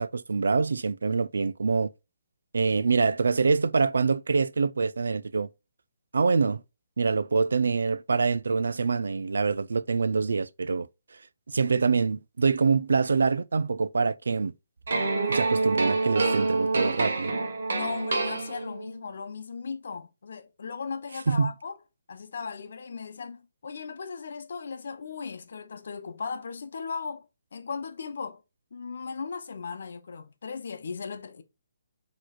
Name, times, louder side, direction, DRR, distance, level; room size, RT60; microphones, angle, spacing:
voice 1, 0.0-1.9 2.5-5.5 6.1-6.6 7.0-10.9 11.5-14.5 15.3-17.3 21.3-21.5, right 4 dB, 85° right, 0.4 m, -25 dB
sound 1, 14.9-19.0, right 3 dB, 55° right, 1.2 m, -27 dB
voice 2, 17.7-21.8 22.1-27.3 27.5-28.4 28.7-31.4, left 5 dB, 55° left, 0.8 m, -37 dB
6.3 x 3.0 x 2.3 m
hypercardioid pair, 175°, 0 cm